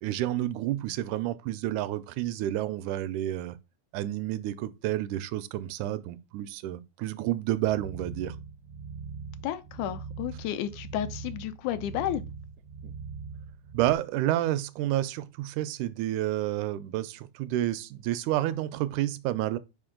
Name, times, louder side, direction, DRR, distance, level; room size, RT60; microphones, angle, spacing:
voice 1, 0.0-3.6 3.9-8.4 12.8-12.9 13.7-19.6, right 14 dB, 90° right, 2.0 m, -30 dB
sound 1, 7.6-13.9, right 5 dB, 65° right, 0.7 m, -41 dB
voice 2, 9.4-12.2, left 11 dB, 85° left, 2.0 m, -32 dB
5.2 x 4.9 x 3.7 m
omnidirectional pair, 3.4 m